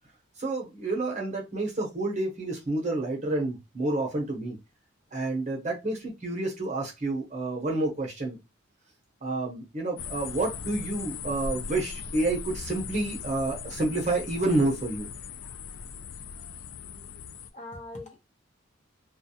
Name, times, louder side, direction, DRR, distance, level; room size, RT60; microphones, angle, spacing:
voice 1, 0.4-4.6 5.1-8.4 9.2-15.1, right 2 dB, 35° right, 0.8 m, -29 dB
sound 1, 10.0-17.5, left 6 dB, 80° left, 0.3 m, -39 dB
voice 2, 16.8-17.1 17.5-18.2, left 2 dB, 35° left, 0.8 m, -43 dB
2.3 x 2.2 x 2.7 m
head